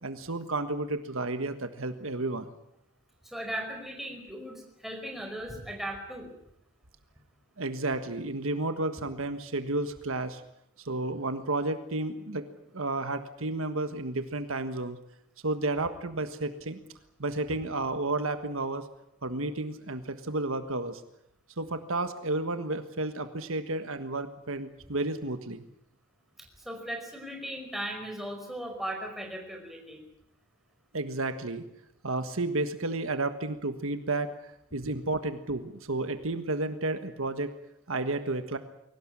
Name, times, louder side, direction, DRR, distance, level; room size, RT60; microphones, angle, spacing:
voice 1, 0.0-2.5 7.6-10.4 10.8-12.4 12.7-15.0 15.4-16.8 17.2-18.8 19.2-21.0 21.6-25.6 30.9-31.6 32.0-37.5 37.9-38.6, right 2 dB, 70° right, 9 dB, 1.5 m, -32 dB
voice 2, 3.2-6.3 26.4-30.0, right 1 dB, ahead, 2 dB, 5.2 m, -37 dB
23.0 x 18.0 x 9.8 m, 0.79 s
head